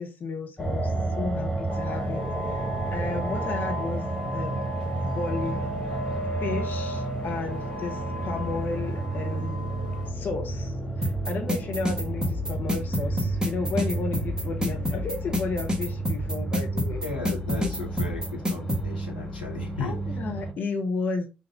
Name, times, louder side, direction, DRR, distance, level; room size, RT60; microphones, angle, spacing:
voice 1, 0.0-4.6 5.0-5.7 6.4-9.7 10.1-17.0 19.8-21.3, left 4 dB, 40° left, 1.0 m, -33 dB
sound 1, 0.6-20.5, right 2 dB, 15° left, 1.3 m, -31 dB
sound 2, 1.7-10.1, right 1 dB, 90° right, 0.6 m, -37 dB
sound 3, 11.0-18.8, equal, 20° right, 1.3 m, -27 dB
voice 2, 17.0-20.0, left 3 dB, 85° left, 1.0 m, -35 dB
5.5 x 2.6 x 3.5 m
figure-of-eight pair, 45°, 5 cm